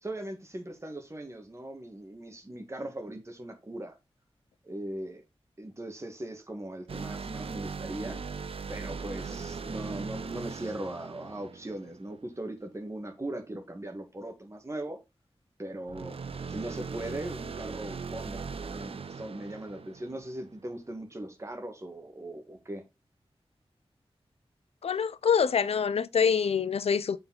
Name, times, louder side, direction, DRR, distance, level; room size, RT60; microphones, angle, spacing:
voice 1, 0.0-3.9 4.6-5.2 5.6-8.2 8.7-15.0 15.6-16.2 16.5-22.8, right 1 dB, 30° right, 1.6 m, -39 dB
sound 1, 6.9-12.4 15.9-20.6, right 5 dB, 70° right, 0.6 m, -39 dB
voice 2, 24.8-27.2, left 6 dB, 85° left, 0.4 m, -25 dB
6.8 x 4.5 x 3.9 m
wide cardioid pair, 105°, 10 cm